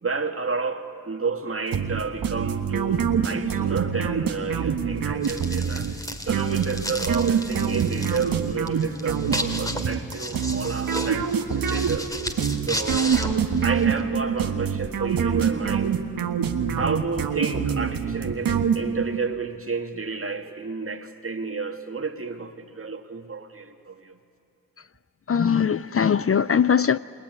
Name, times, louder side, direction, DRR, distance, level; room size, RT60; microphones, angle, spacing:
voice 1, 0.0-6.0 6.3-12.1 12.7-13.2 13.6-16.0 16.7-24.2, right 4 dB, 40° right, 2.2 m, -31 dB
sound 1, 1.7-19.2, right 7 dB, 80° right, 1.4 m, -25 dB
sound 2, 5.2-14.0, equal, 10° left, 2.8 m, -34 dB
voice 2, 25.3-27.0, left 7 dB, 40° left, 0.5 m, -20 dB
28.5 x 20.5 x 9.9 m
cardioid pair, 50°, 34 cm